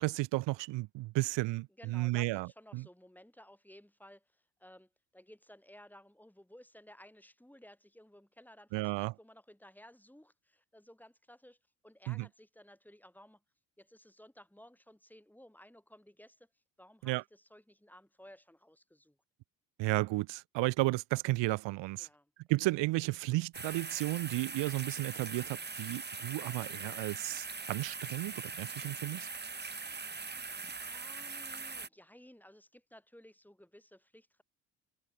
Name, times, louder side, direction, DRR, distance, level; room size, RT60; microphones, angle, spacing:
voice 1, 0.0-2.8 8.7-9.1 12.1-12.3 17.0-17.2 19.8-22.1 22.5-29.3, right 20 dB, 60° right, 1.0 m, -33 dB
voice 2, 1.8-11.6 11.8-13.4 13.8-16.5 16.8-19.2 22.0-22.3 30.7-34.4, left 1 dB, 5° left, 4.7 m, -57 dB
sound 1, 23.5-31.9, right 4 dB, 20° right, 1.9 m, -42 dB
open air
hypercardioid pair, 55°, 48 cm